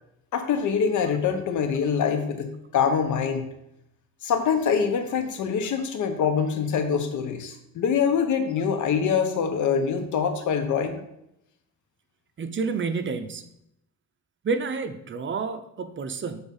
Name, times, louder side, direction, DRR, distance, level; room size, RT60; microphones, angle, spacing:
voice 1, 0.3-3.5 4.2-11.0, left 6 dB, 75° left, 6 dB, 1.2 m, -24 dB
voice 2, 12.4-13.4 14.4-16.5, right 4 dB, 40° right, 9 dB, 0.7 m, -29 dB
7.0 x 4.0 x 5.5 m, 0.79 s
cardioid pair, 90°, 30 cm